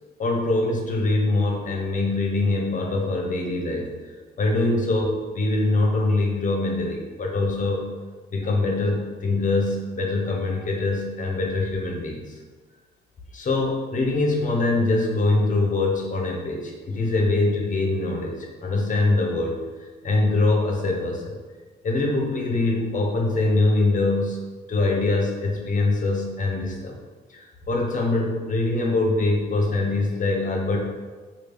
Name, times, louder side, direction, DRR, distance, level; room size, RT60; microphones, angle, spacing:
voice 1, 0.2-7.9 8.3-12.4 13.3-21.3 21.8-24.4 24.7-27.0 27.3-30.8, left 2 dB, 40° left, 0 dB, 0.7 m, -23 dB
3.1 x 2.4 x 3.4 m, 1.4 s
cardioid pair, 90°, 20 cm